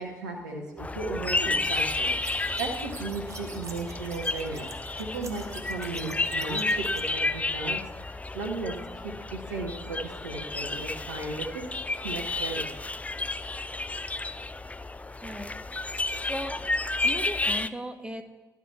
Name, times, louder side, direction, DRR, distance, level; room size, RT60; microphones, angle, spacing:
voice 1, 0.0-4.7 5.0-11.6 12.0-12.7, right 3 dB, 90° right, 0 dB, 0.9 m, -36 dB
sound 1, 0.8-17.7, left 2 dB, 15° left, 0.4 m, -31 dB
sound 2, 1.6-7.0, right 3 dB, 35° right, 1.5 m, -46 dB
voice 2, 15.2-15.5 16.3-16.6 17.0-18.2, equal, 10° right, 7 dB, 1.1 m, -36 dB
12.5 x 4.9 x 5.5 m, 1.2 s
hypercardioid pair, 45°, 9 cm